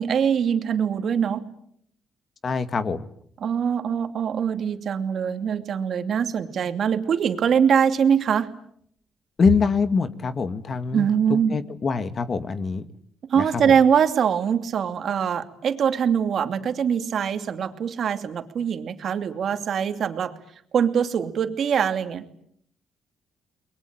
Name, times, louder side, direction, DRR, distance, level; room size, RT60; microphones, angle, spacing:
voice 1, 0.0-1.5 3.4-8.5 10.9-11.6 13.3-20.3 20.7-22.2, right 7 dB, 60° right, 8 dB, 2.7 m, -23 dB
voice 2, 2.4-3.1 9.4-11.1 11.5-12.9 13.4-13.7, left 5 dB, 45° left, 11 dB, 2.2 m, -24 dB
30.0 x 22.0 x 8.9 m, 0.69 s
cardioid pair, 90°, 0 cm